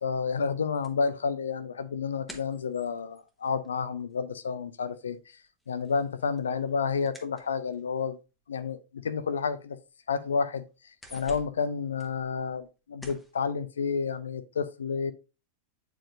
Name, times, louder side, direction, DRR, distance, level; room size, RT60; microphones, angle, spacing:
voice 1, 0.0-5.2 5.7-8.2 8.5-9.8 10.1-10.6 11.1-15.1, left 5 dB, 70° left, 0.5 m, -30 dB
sound 1, 0.8-4.5 4.8-8.0 8.8-8.9 9.3-9.4 9.8-10.4 10.7-12.7 13.0-13.4, equal, 10° left, 1.1 m, -51 dB
8.7 x 4.6 x 2.6 m
figure-of-eight pair, 90°, 0 cm